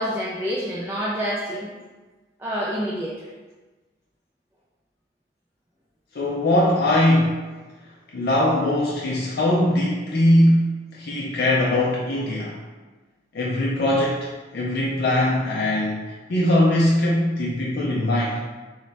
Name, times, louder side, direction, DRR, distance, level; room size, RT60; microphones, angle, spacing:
voice 1, 0.0-1.7 2.4-3.3, equal, 10° right, -6 dB, 0.3 m, -27 dB
voice 2, 6.1-7.4 8.1-12.6 13.3-18.4, left 1 dB, 55° left, -5 dB, 0.5 m, -21 dB
3.2 x 2.1 x 4.0 m, 1.3 s
head